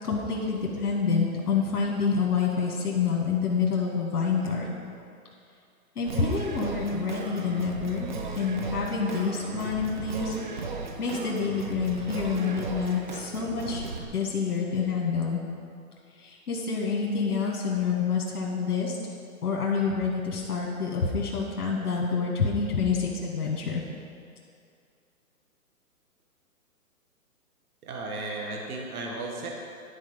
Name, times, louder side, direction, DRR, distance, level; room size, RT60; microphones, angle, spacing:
voice 1, 0.0-4.7 5.9-8.1 8.3-10.7 11.0-13.9 14.1-15.4 16.2-19.0 19.4-23.8, left 5 dB, 80° left, -2 dB, 1.7 m, -27 dB
Singing, 6.1-14.0, right 4 dB, 35° right, 0.4 m, -36 dB
voice 2, 27.8-29.5, right 2 dB, 75° right, 0 dB, 1.5 m, -34 dB
11.5 x 4.2 x 5.4 m, 2.4 s
hypercardioid pair, 155°, 45 cm